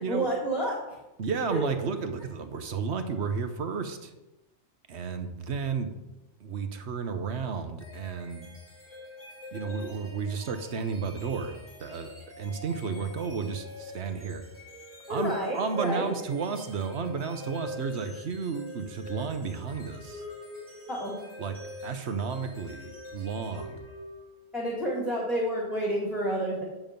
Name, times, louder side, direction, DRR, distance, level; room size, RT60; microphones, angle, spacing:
voice 1, 0.1-1.0 1.5-1.6 15.1-16.1 20.9-21.2 24.5-26.6, right 1 dB, ahead, -3 dB, 2.2 m, -29 dB
voice 2, 1.2-4.1 4.9-5.9 6.4-8.5 9.5-14.4 15.1-20.2 21.4-21.6 21.8-23.8, right 5 dB, 60° right, 8 dB, 1.1 m, -32 dB
sound 1, 7.8-24.4, left 2 dB, 30° left, 4.3 m, -45 dB
9.1 x 7.1 x 5.3 m, 0.99 s
omnidirectional pair, 1.3 m